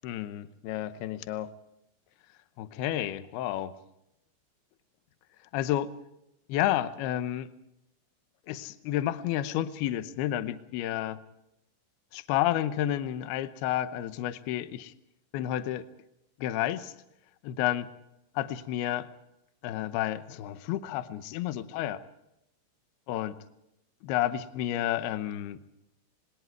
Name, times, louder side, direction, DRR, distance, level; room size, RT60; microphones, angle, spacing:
voice 1, 0.0-1.5 2.6-3.7 5.5-5.9 6.5-7.5 8.5-11.2 12.1-14.9 15.3-15.9 16.4-16.9 17.4-17.9 18.4-19.1 19.6-22.0 23.1-23.3 24.0-25.6, left 13 dB, 85° left, 11 dB, 2.2 m, -30 dB
28.0 x 20.5 x 4.7 m, 0.85 s
omnidirectional pair, 5.8 m